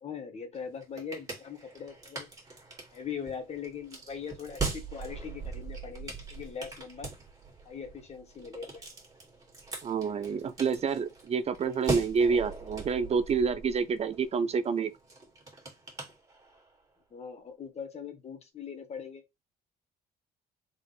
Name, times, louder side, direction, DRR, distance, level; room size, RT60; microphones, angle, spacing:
voice 1, 0.0-2.3 2.9-7.1 7.6-8.8 17.1-19.2, left 6 dB, 40° left, 1.4 m, -41 dB
sound 1, 0.5-16.8, right 3 dB, 20° right, 2.3 m, -41 dB
voice 2, 9.8-14.9, right 5 dB, 40° right, 0.6 m, -28 dB
4.0 x 3.7 x 3.4 m
cardioid pair, 110°, 17 cm